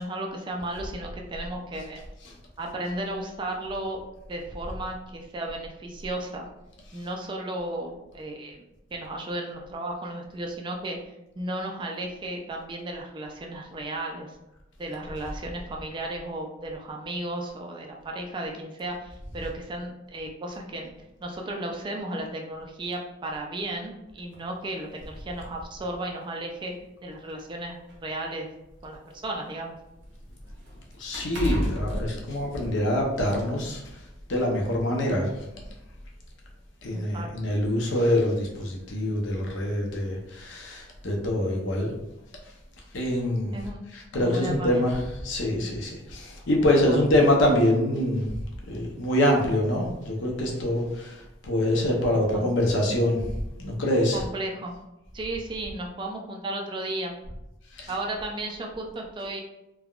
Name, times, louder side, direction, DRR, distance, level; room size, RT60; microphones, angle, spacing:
voice 1, 0.0-2.0 2.6-4.0 4.3-6.5 6.9-8.6 8.9-14.4 14.8-20.9 21.2-26.7 27.0-27.8 28.0-28.5 28.8-29.7 36.9-37.3 43.5-43.8 44.1-44.9 46.9-47.0 52.3-52.5 54.1-54.7 55.1-57.1 57.9-59.4, right 1 dB, 25° right, 1 dB, 0.3 m, -34 dB
sound 1, 24.3-24.5 25.5-25.6 26.1-26.2 27.2-29.1 29.5-33.0 33.4-33.5, equal, 70° right, 0.7 m, -34 dB
voice 2, 31.0-34.0 34.3-35.4 36.8-41.9 42.4-42.5 42.9-43.6 43.9-48.4 48.7-54.2 57.7-57.9, left 1 dB, 75° left, -1 dB, 0.7 m, -25 dB
3.4 x 2.2 x 2.3 m, 0.93 s
head